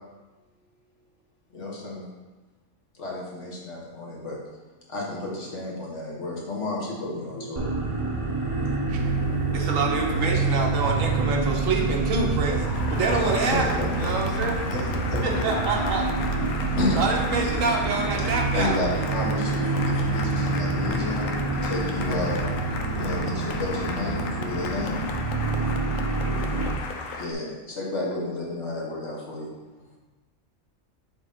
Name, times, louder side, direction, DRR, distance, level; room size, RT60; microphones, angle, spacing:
voice 1, 1.5-2.0 2.9-4.4 4.9-8.6 13.2-14.1 14.7-15.3 16.8-17.0 18.2-21.3 21.6-22.6 23.0-25.0 27.2-29.5, left 2 dB, 65° left, -4 dB, 1.7 m, -32 dB
sound 1, 7.6-26.8, right 3 dB, 30° right, 0.9 m, -27 dB
sound 2, 8.9-24.2, right 3 dB, 65° right, 0.8 m, -37 dB
voice 2, 9.5-14.6 15.2-16.0 16.9-18.8 26.2-26.7, right 3 dB, 85° right, 1 dB, 1.3 m, -27 dB
Cheering / Applause, 12.5-27.3, left 4 dB, 85° left, 1.0 m, -36 dB
voice 3, 15.3-16.0 29.7-30.0, left 1 dB, 25° left, -3 dB, 1.1 m, -36 dB
6.9 x 4.2 x 3.6 m, 1.2 s
omnidirectional pair, 1.3 m